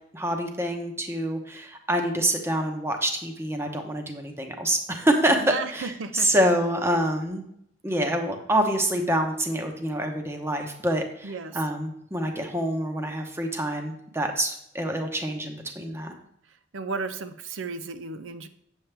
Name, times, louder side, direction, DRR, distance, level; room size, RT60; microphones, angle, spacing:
voice 1, 0.1-5.4 5.7-7.4 7.8-16.1, right 1 dB, 15° right, 4 dB, 0.9 m, -26 dB
voice 2, 5.4-6.3 11.2-11.6 16.7-18.5, right 4 dB, 85° right, 10 dB, 0.6 m, -34 dB
8.7 x 7.3 x 3.4 m, 0.74 s
head